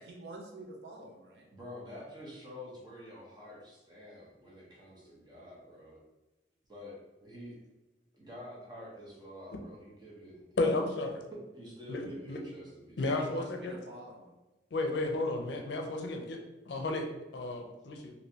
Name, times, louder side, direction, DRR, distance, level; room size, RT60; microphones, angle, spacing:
voice 1, 0.0-1.5 13.0-14.3, right 1 dB, 70° right, 1 dB, 0.6 m, -47 dB
voice 2, 1.5-6.0 6.7-7.6 8.1-10.7 11.5-13.4, left 1 dB, 25° right, -5 dB, 0.8 m, -48 dB
voice 3, 10.6-11.1 11.9-12.4 13.0-13.7 14.7-16.4 16.7-17.0 17.3-18.1, left 2 dB, 75° left, 2 dB, 0.5 m, -32 dB
3.1 x 2.7 x 2.7 m, 1.1 s
head